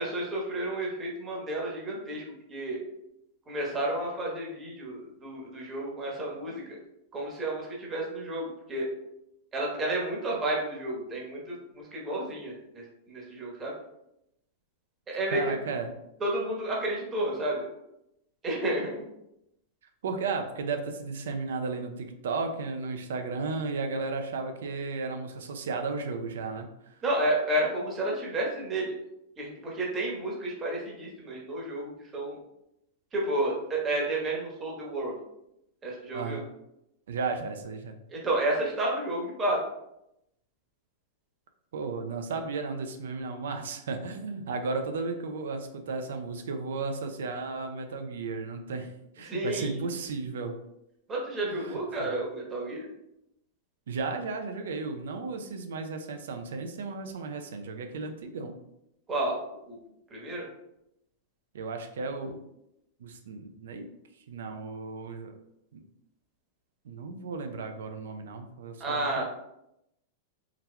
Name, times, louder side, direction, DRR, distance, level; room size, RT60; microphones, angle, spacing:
voice 1, 0.0-2.8 3.5-6.6 7.1-8.9 9.5-13.7 15.1-15.5 16.2-17.7 18.4-19.1 27.0-28.9 29.4-32.4 33.1-35.2 35.8-36.4 38.1-39.6 49.2-49.8 51.1-52.9 59.1-59.4 59.7-59.8 60.1-60.5 68.8-69.2, right 1 dB, 20° right, -3 dB, 1.1 m, -31 dB
voice 2, 15.3-15.9 20.0-26.7 36.1-36.4 37.1-37.9 41.7-48.9 49.2-50.5 51.5-52.1 53.9-58.5 61.5-62.4 63.0-63.9 64.3-65.3 65.7-65.8 66.8-69.2, right 4 dB, 85° right, 6 dB, 0.5 m, -34 dB
3.9 x 2.9 x 2.2 m, 0.83 s
hypercardioid pair, 135°, 0 cm